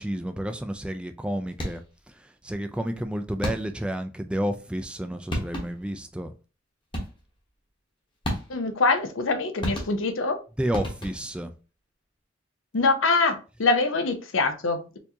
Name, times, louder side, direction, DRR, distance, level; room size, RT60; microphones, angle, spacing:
voice 1, 0.0-1.8 2.4-6.3 10.6-11.5, equal, 5° right, 0.3 m, -30 dB
sound 1, 1.5-2.0 3.4-4.0 5.0-5.1 5.3-6.0 6.9-7.4 8.2-8.8 9.6-10.3 10.7-11.4, equal, 25° left, 1.0 m, -33 dB
voice 2, 8.5-10.4 12.7-15.0, left 3 dB, 75° left, 0.7 m, -24 dB
4.4 x 2.7 x 2.8 m
head